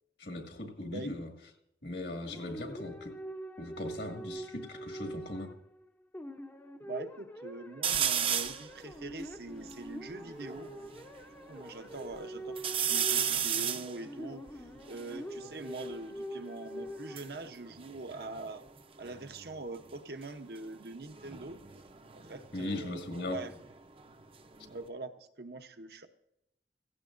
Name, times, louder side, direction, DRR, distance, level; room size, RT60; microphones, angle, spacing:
voice 1, 0.2-1.3 1.8-3.2 3.6-5.6 22.5-23.5, left 2 dB, 75° left, 1.9 m, -39 dB
sound 1, 2.2-5.8 6.1-17.2, equal, 10° left, 0.6 m, -44 dB
voice 2, 6.8-10.7 11.5-18.6 19.0-21.6 22.1-23.5 24.7-26.1, right 3 dB, 65° right, 0.8 m, -43 dB
sound 2, 7.8-8.7 9.2-9.3 9.5-11.1 11.6-12.2 12.6-15.9 16.9-18.8 19.0-19.5 21.1-23.7 24.1-24.9, right 8 dB, 30° right, 0.6 m, -34 dB
16.0 x 16.0 x 2.5 m
head